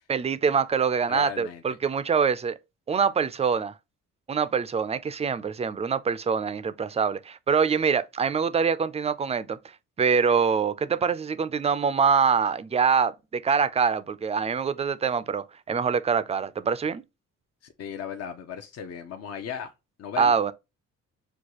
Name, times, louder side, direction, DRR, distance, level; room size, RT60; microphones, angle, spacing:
voice 1, 0.1-2.6 2.9-3.7 4.3-9.6 10.0-17.0 20.2-20.5, right 6 dB, 20° right, 0.4 m, -24 dB
voice 2, 1.1-1.6 17.8-19.7 20.0-20.3, left 8 dB, 55° left, 0.7 m, -36 dB
6.4 x 2.3 x 2.9 m
cardioid pair, 90°, 30 cm